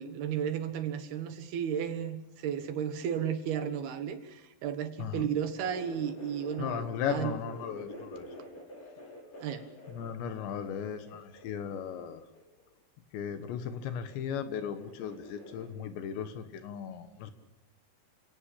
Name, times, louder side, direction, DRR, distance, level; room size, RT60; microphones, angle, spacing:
voice 1, 0.0-7.4 9.4-9.7, right 8 dB, 70° right, 9 dB, 3.3 m, -34 dB
voice 2, 5.0-5.3 6.6-8.2 9.9-12.2 13.1-17.3, left 8 dB, 90° left, 9 dB, 3.8 m, -36 dB
sound 1, 5.7-6.8 7.1-12.6 13.6-14.2 14.5-15.7, left 1 dB, 35° left, 7.9 m, -47 dB
27.5 x 17.5 x 8.6 m, 0.96 s
omnidirectional pair, 5.0 m